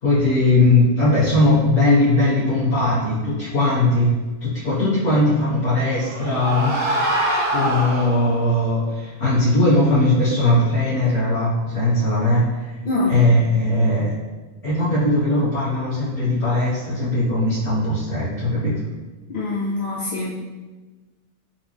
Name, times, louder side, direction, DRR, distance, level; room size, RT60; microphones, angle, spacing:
voice 1, 0.0-4.1 4.4-6.8 7.5-12.8 13.1-14.1 14.6-18.8, left 2 dB, 70° left, -13 dB, 1.8 m, -19 dB
sound 1, 5.5-8.5, right 1 dB, 80° right, 1.3 m, -24 dB
voice 2, 12.8-13.2 19.3-20.3, left 2 dB, 50° left, -7 dB, 0.5 m, -24 dB
3.8 x 2.9 x 3.3 m, 1.3 s
omnidirectional pair, 1.3 m